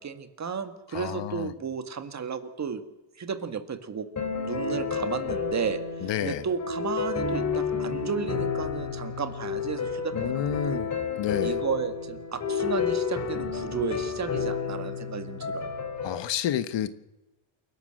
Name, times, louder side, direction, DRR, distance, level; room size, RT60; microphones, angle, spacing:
voice 1, 0.0-2.8 3.2-4.1 4.4-10.8 11.4-15.6, right 6 dB, 35° right, 9 dB, 1.8 m, -33 dB
voice 2, 0.9-1.5 6.0-6.4 10.1-10.9 11.2-11.6 16.0-17.0, left 10 dB, 65° left, 13 dB, 1.4 m, -30 dB
sound 1, 4.2-16.2, left 5 dB, 35° left, 3.7 m, -30 dB
28.5 x 12.0 x 7.7 m, 1.0 s
cardioid pair, 135°, 46 cm